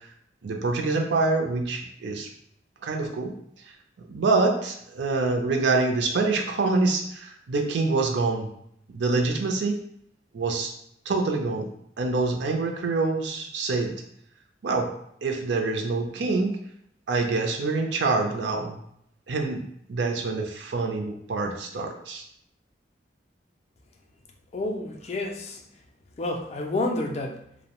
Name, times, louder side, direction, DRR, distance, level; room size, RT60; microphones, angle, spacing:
voice 1, 0.4-2.3 2.8-3.3 3.7-3.8 4.1-8.5 8.9-9.8 10.3-10.7 11.1-11.7 12.0-13.9 14.6-14.9 15.2-16.6 17.1-18.8 19.3-19.6 19.9-22.2, right 3 dB, 70° right, 2 dB, 0.4 m, -26 dB
voice 2, 24.5-25.7 26.2-27.5, left 2 dB, 35° left, 2 dB, 0.3 m, -29 dB
2.6 x 2.0 x 2.9 m, 0.72 s
head